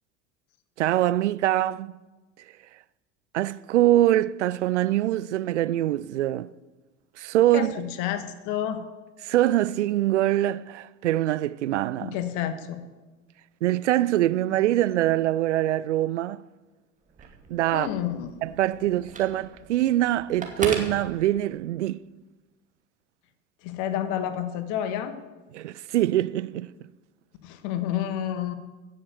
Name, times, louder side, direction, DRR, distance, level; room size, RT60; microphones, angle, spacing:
voice 1, 0.8-1.9 3.3-6.5 7.2-7.7 9.2-12.1 13.6-16.4 17.5-17.9 18.4-22.0 25.5-26.7, right 14 dB, 70° right, 0.5 m, -24 dB
voice 2, 7.5-8.8 12.0-12.8 17.7-18.3 23.6-25.2 27.4-28.5, left 10 dB, 50° left, 1.4 m, -29 dB
Telephone, 17.0-21.8, right 3 dB, 20° right, 2.3 m, -38 dB
15.5 x 7.0 x 7.9 m
figure-of-eight pair, 70°, 37 cm